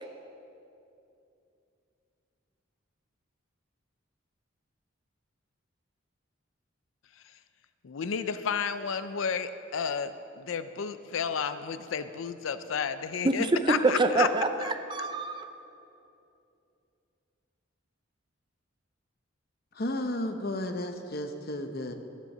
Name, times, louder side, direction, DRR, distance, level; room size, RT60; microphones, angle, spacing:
voice 1, 7.8-14.3, left 6 dB, 80° left, 12 dB, 0.5 m, -32 dB
voice 2, 13.2-15.5, right 2 dB, 25° right, 7 dB, 0.6 m, -26 dB
voice 3, 19.7-21.9, left 1 dB, 50° left, 6 dB, 0.8 m, -33 dB
13.5 x 7.6 x 6.6 m, 2.7 s
head